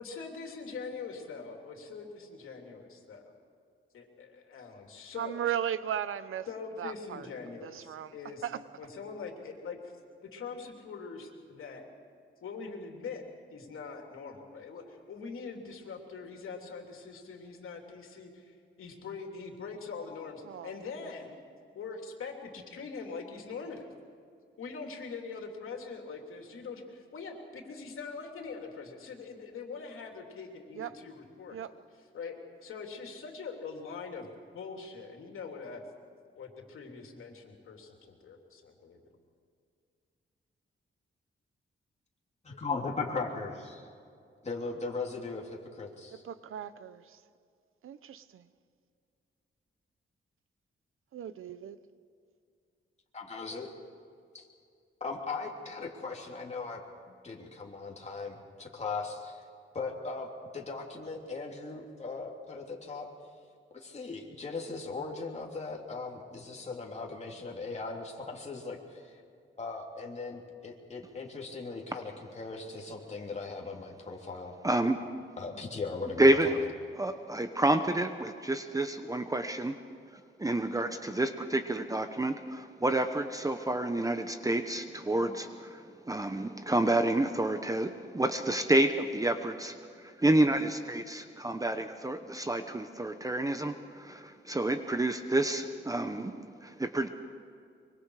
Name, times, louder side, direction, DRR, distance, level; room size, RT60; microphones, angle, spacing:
voice 1, 0.0-3.3 3.9-5.4 6.5-8.5 8.8-9.9 10.3-11.9 12.4-21.4 21.7-23.9 24.6-31.7 32.1-34.3 34.5-35.8 36.4-39.0, left 5 dB, 85° left, 2 dB, 3.2 m, -43 dB
voice 2, 5.2-6.5 6.8-7.3 7.6-8.1 8.4-8.6 20.4-20.8 30.7-31.0 31.5-31.7 46.1-47.2 47.8-48.4 51.1-51.8, right 9 dB, 85° right, 14 dB, 0.8 m, -36 dB
voice 3, 42.4-43.9 44.4-46.2 53.1-53.7 54.3-54.5 55.0-56.8 57.1-59.4 59.7-63.1 63.8-69.2 69.6-74.6 75.4-76.7, left 4 dB, 35° left, -2 dB, 3.4 m, -38 dB
voice 4, 74.6-75.0 76.2-76.6 77.0-79.7 80.4-89.8 90.0-97.1, right 1 dB, 15° right, 8 dB, 1.0 m, -29 dB
24.5 x 23.5 x 4.9 m, 2.4 s
wide cardioid pair, 105°, 21 cm